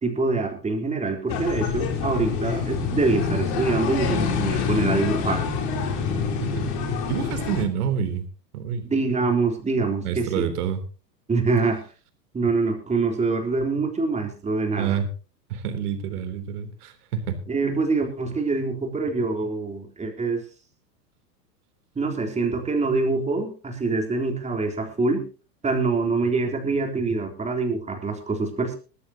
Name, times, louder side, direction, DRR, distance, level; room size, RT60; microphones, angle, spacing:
voice 1, 0.0-5.4 8.9-10.5 11.3-11.8 12.3-15.0 17.5-20.4 22.0-25.2 25.6-28.8, right 3 dB, 15° right, 3 dB, 3.6 m, -25 dB
sound 1, 1.3-7.6, left 6 dB, 45° left, 3.9 m, -26 dB
voice 2, 7.1-8.3 8.5-8.9 10.0-10.8 14.8-15.1 15.5-17.4, right 8 dB, 60° right, 9 dB, 3.5 m, -28 dB
20.5 x 13.5 x 2.9 m, 0.34 s
hypercardioid pair, 130°, 50 cm